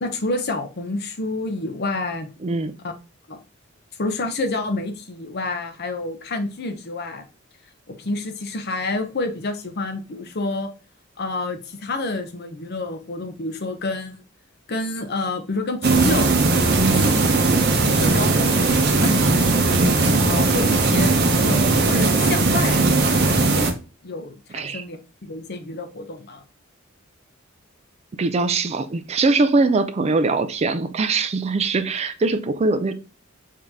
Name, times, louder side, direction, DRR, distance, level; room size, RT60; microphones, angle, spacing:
voice 1, 0.0-2.3 2.8-2.9 3.3-3.4 4.0-7.2 7.9-10.7 11.2-14.2 14.7-16.4 16.9-17.3 17.9-19.8 20.3-23.7 24.0-26.4, left 2 dB, 50° left, 0.8 m, -29 dB
voice 2, 2.4-2.7 16.8-17.1 24.5-24.8 28.2-32.9, right 3 dB, 30° right, 0.4 m, -22 dB
sound 1, 15.8-23.7, right 3 dB, 50° right, 0.8 m, -18 dB
5.0 x 2.8 x 3.6 m
head